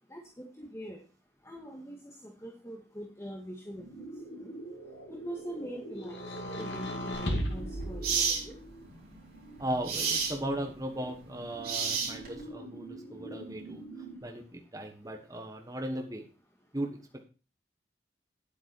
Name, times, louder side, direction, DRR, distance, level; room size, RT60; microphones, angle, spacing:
voice 1, 0.1-1.0 1.4-2.1 2.4-3.8 4.4-4.5 5.1-6.2 6.6-8.5, right 1 dB, 15° left, 0 dB, 1.8 m, -42 dB
sound 1, 3.7-14.2, right 2 dB, 55° left, 4.7 m, -46 dB
sound 2, 6.1-8.8 9.7-10.7, equal, 75° left, 2.5 m, -37 dB
sound 3, 7.1-7.3 8.0-8.4 9.8-10.4 11.6-12.4, right 5 dB, 55° right, 3.8 m, -29 dB
voice 2, 9.6-13.8 14.2-16.3 16.7-17.2, right 1 dB, 20° right, 4 dB, 1.3 m, -37 dB
9.8 x 8.5 x 4.5 m, 0.33 s
head